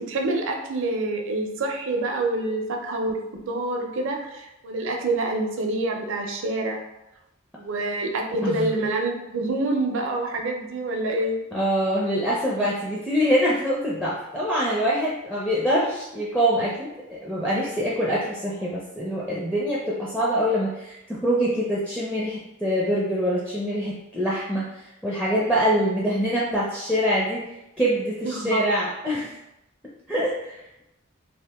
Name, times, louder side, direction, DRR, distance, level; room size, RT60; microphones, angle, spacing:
voice 1, 0.0-3.2 3.4-6.8 7.6-11.3 28.2-28.7, right 2 dB, 65° right, 2 dB, 0.5 m, -27 dB
voice 2, 8.4-8.7 11.5-27.4 27.8-29.3 30.1-30.8, equal, 5° left, -6 dB, 0.4 m, -24 dB
2.8 x 2.5 x 3.4 m, 0.90 s
head